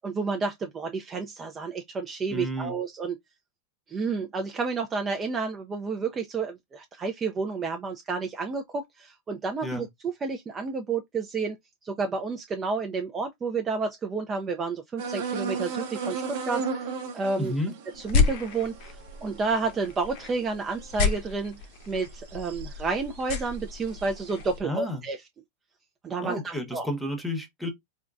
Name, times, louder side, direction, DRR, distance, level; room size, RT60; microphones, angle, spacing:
voice 1, 0.0-3.2 3.9-9.9 10.2-11.6 11.8-16.9 17.1-17.5 18.0-21.6 21.9-25.2 26.0-26.9, right 4 dB, 25° right, 0.4 m, -30 dB
voice 2, 2.3-2.8 9.6-9.8 17.4-17.7 24.6-25.0 26.2-27.7, left 1 dB, ahead, 1.0 m, -31 dB
sound 1, 15.0-21.4 22.0-22.8 23.1-24.3, right 5 dB, 65° right, 0.9 m, -35 dB
sound 2, 17.9-24.6, left 5 dB, 60° left, 0.7 m, -31 dB
3.6 x 2.2 x 2.4 m
hypercardioid pair, 110°, 0 cm